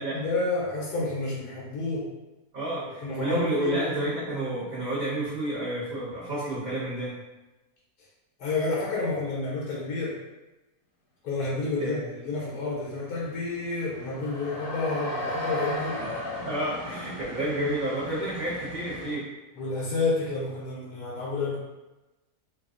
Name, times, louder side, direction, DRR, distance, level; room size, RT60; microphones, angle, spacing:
voice 1, 0.1-2.1 3.0-3.8 8.4-10.2 11.2-16.0 19.5-21.6, left 3 dB, 85° left, -6 dB, 1.3 m, -30 dB
voice 2, 2.5-7.2 11.8-12.1 16.0-16.2 16.4-19.3, right 1 dB, 35° right, -13 dB, 0.9 m, -30 dB
sound 1, 12.6-12.7 12.9-19.1, left 1 dB, 55° left, 1.0 m, -36 dB
3.4 x 2.3 x 2.4 m, 1.1 s
omnidirectional pair, 1.6 m